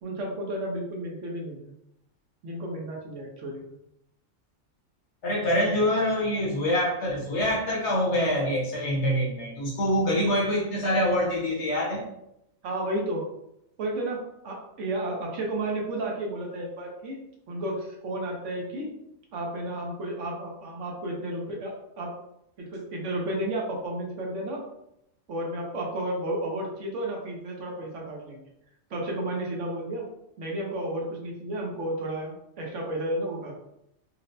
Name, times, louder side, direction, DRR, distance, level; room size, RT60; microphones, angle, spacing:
voice 1, 0.0-1.7 2.4-3.7 12.6-13.2 13.8-17.2 17.5-18.9 19.3-22.1 22.6-24.6 25.3-28.4 28.9-30.1 30.4-33.6, right 1 dB, 65° right, -1 dB, 1.1 m, -32 dB
voice 2, 5.2-12.0, left 1 dB, 60° left, -3 dB, 1.1 m, -25 dB
4.2 x 2.0 x 2.6 m, 0.81 s
omnidirectional pair, 1.4 m